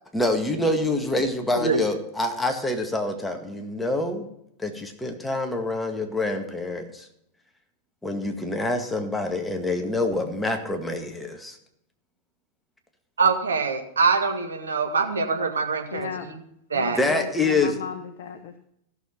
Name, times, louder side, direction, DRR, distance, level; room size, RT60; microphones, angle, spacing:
voice 1, 0.1-4.3 4.6-7.1 8.0-11.6 17.0-17.7, left 2 dB, 5° left, 4 dB, 1.8 m, -26 dB
voice 2, 1.5-1.8 13.2-16.1 16.7-17.0, right 5 dB, 70° right, 4 dB, 1.9 m, -24 dB
voice 3, 15.9-16.3 16.7-18.6, left 7 dB, 50° left, 7 dB, 1.1 m, -35 dB
15.0 x 7.0 x 5.8 m, 0.74 s
figure-of-eight pair, 90°, 0 cm